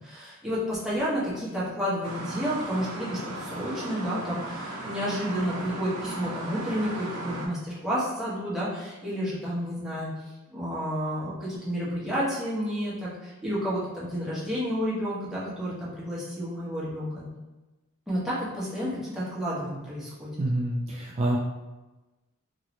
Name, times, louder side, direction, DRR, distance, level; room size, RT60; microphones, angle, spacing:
voice 1, 0.0-10.1 10.5-17.3 18.1-20.3, equal, ahead, -9 dB, 1.0 m, -31 dB
sound 1, 2.0-7.5, right 2 dB, 85° right, 0.6 m, -36 dB
voice 2, 20.4-21.4, right 1 dB, 30° right, -4 dB, 0.3 m, -27 dB
3.0 x 2.8 x 2.8 m, 1.1 s
head